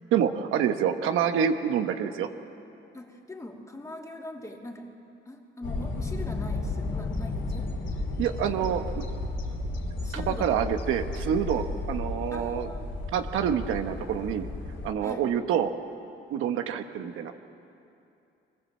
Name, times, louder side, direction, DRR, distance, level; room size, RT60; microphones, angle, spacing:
voice 1, 0.1-2.3 8.2-9.0 10.1-12.7 13.1-14.5 14.8-15.7 16.3-17.3, right 8 dB, 90° right, 7 dB, 1.2 m, -27 dB
voice 2, 2.9-4.9 5.2-7.8 8.4-8.6 10.0-10.6 11.7-11.8 12.3-12.9 15.0-15.3, left 1 dB, 15° left, 0 dB, 2.9 m, -42 dB
sound 1, 5.6-14.9, left 2 dB, 70° left, 3.1 m, -33 dB
23.0 x 20.0 x 7.6 m, 2.7 s
cardioid pair, 90°, 20 cm